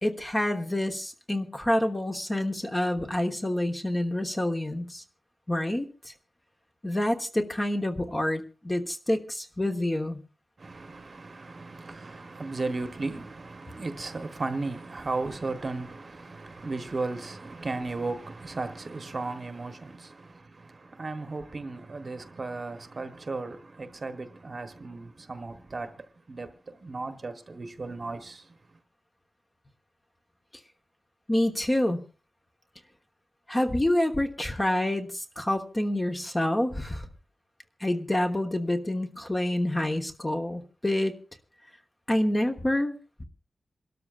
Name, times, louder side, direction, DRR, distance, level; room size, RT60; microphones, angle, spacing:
voice 1, 0.0-5.0 5.5-6.1 6.8-10.2 31.3-32.0 33.5-37.1 37.8-41.1 42.1-42.9, left 1 dB, 15° left, 1.2 m, -27 dB
voice 2, 10.6-28.6, right 3 dB, 40° right, 1.1 m, -35 dB
28.0 x 13.0 x 2.5 m
wide cardioid pair, 150°, 0 cm